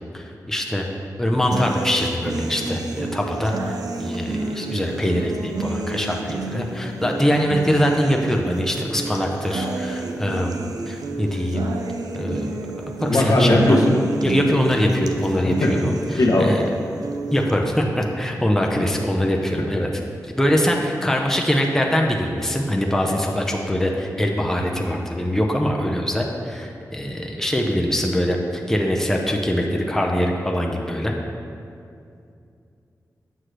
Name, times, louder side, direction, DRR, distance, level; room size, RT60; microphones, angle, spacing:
voice 1, 0.1-0.9 1.2-11.7 12.1-13.8 14.2-16.6 17.3-19.9 20.4-31.2, equal, 5° left, 1 dB, 0.6 m, -23 dB
sound 1, 1.5-17.5, right 2 dB, 75° right, 0.5 m, -30 dB
voice 2, 13.0-14.2 15.5-15.9 16.1-16.5 18.7-18.9 19.6-19.7, left 1 dB, 65° left, -1 dB, 0.9 m, -19 dB
7.7 x 6.3 x 3.3 m, 2.5 s
wide cardioid pair, 80°, 7 cm